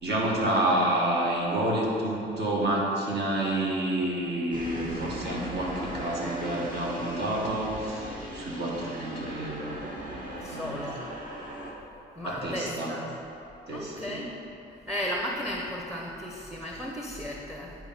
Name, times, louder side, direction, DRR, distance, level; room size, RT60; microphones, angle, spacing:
voice 1, 0.0-9.8 10.5-10.9 12.2-12.9 13.7-14.2, right 1 dB, 55° right, -4 dB, 1.8 m, -29 dB
sound 1, 4.5-11.7, right 1 dB, 40° right, 1.4 m, -38 dB
voice 2, 10.4-11.1 12.2-13.1 13.7-14.3 14.9-17.7, equal, ahead, -1 dB, 0.8 m, -35 dB
10.0 x 4.5 x 4.3 m, 2.9 s
cardioid pair, 90°, 20 cm